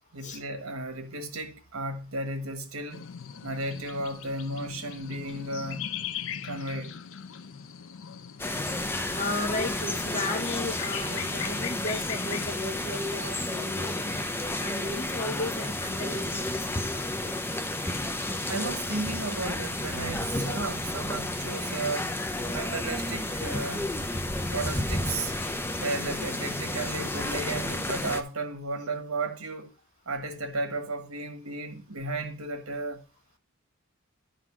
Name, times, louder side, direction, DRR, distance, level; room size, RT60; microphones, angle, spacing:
voice 1, 0.1-3.1 3.4-5.9 6.4-7.0 11.1-11.3 17.9-22.1 22.5-23.9 24.5-25.3 25.8-29.7 30.0-33.0, right 2 dB, 80° right, 1.4 m, -34 dB
sound 1, 2.9-12.5, left 8 dB, 65° left, 0.5 m, -40 dB
sound 2, 8.4-28.2, left 1 dB, 10° left, 0.6 m, -31 dB
voice 2, 9.1-14.3 14.6-17.3, left 2 dB, 35° left, 1.1 m, -34 dB
11.0 x 3.9 x 5.9 m
head